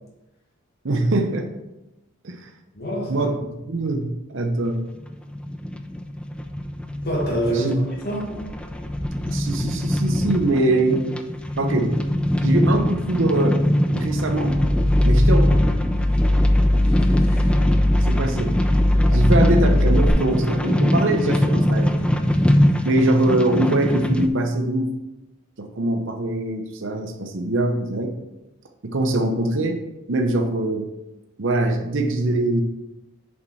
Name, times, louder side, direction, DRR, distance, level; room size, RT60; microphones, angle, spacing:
voice 1, 0.8-1.5 2.2-2.5 3.1-3.4 3.7-4.9 7.5-7.7 9.3-11.1 11.6-12.0 12.4-13.6 13.9-14.6 15.0-15.6 18.0-18.6 19.1-22.1 22.8-24.9 25.6-28.1 28.8-29.8 30.1-30.9 31.4-32.6, right 2 dB, 60° right, 4 dB, 0.8 m, -23 dB
voice 2, 2.8-3.3 7.0-7.7 8.0-8.4 16.9-17.4, right 1 dB, 50° left, -1 dB, 1.5 m, -26 dB
sound 1, 4.9-24.3, equal, 5° left, 0.4 m, -23 dB
sound 2, 14.5-20.1, left 1 dB, 15° right, 0.9 m, -19 dB
7.0 x 5.1 x 4.1 m, 0.95 s
head